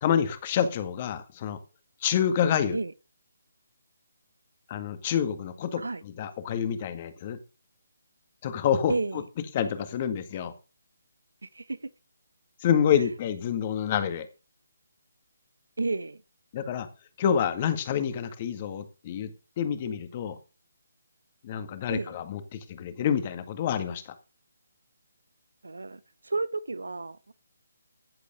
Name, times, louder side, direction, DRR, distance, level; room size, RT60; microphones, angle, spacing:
voice 1, 0.0-1.6 2.0-2.8 4.7-7.4 8.4-9.2 9.5-10.5 12.6-14.3 16.5-16.9 17.2-20.4 21.4-24.1, left 8 dB, 30° left, 1.8 m, -28 dB
voice 2, 8.9-9.2 11.4-11.9 15.8-16.2 21.9-22.1 25.6-27.3, right 3 dB, 80° right, 1.0 m, -32 dB
14.0 x 5.2 x 6.8 m
figure-of-eight pair, 155°, 0 cm